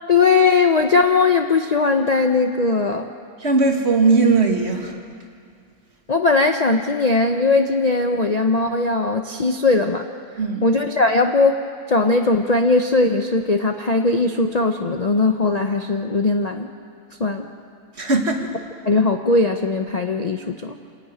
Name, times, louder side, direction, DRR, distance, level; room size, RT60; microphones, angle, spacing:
voice 1, 0.1-3.1 6.1-10.0 10.6-11.6 11.9-16.7 17.2-17.5 18.8-20.8, left 3 dB, 35° left, 4 dB, 0.6 m, -19 dB
voice 2, 3.4-5.0 10.4-10.7 18.0-18.5, right 3 dB, 45° right, 2 dB, 2.0 m, -18 dB
27.0 x 11.0 x 9.2 m, 2.3 s
omnidirectional pair, 1.6 m